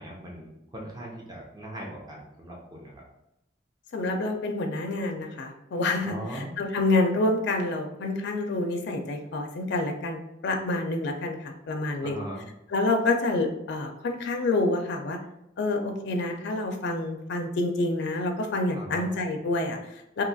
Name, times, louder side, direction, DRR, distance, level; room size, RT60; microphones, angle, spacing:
voice 1, 0.0-3.0 6.0-6.5 12.0-12.5 18.7-19.0, right 1 dB, 20° right, -2 dB, 0.6 m, -39 dB
voice 2, 3.9-12.2 12.7-15.2 15.6-20.2, left 2 dB, 60° left, 3 dB, 0.4 m, -28 dB
2.7 x 2.3 x 3.9 m, 0.84 s
head